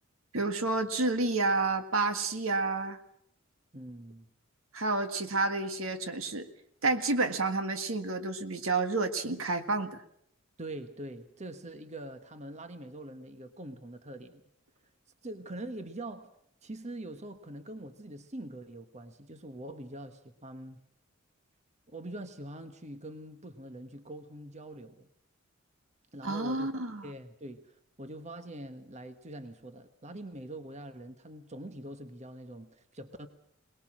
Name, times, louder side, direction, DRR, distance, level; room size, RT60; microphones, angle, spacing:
voice 1, 0.3-3.0 4.7-6.5 6.8-10.0 26.2-27.1, right 3 dB, 75° right, 8 dB, 1.7 m, -30 dB
voice 2, 3.7-4.3 10.6-14.4 15.2-16.3 16.6-20.8 21.9-25.1 26.1-33.3, right 1 dB, 35° right, 8 dB, 1.3 m, -44 dB
22.5 x 20.5 x 6.3 m, 0.70 s
head